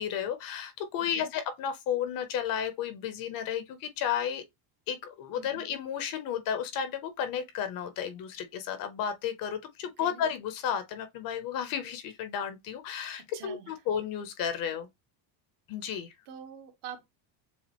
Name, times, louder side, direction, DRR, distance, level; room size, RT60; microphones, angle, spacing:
voice 1, 0.0-4.4 4.9-14.9 15.7-16.1, left 8 dB, 45° left, 0.8 m, -33 dB
voice 2, 1.0-1.3 5.3-5.7 10.0-10.2 13.1-13.7 16.3-17.0, right 7 dB, 60° right, 1.2 m, -45 dB
7.1 x 2.4 x 2.9 m
cardioid pair, 175°, 49 cm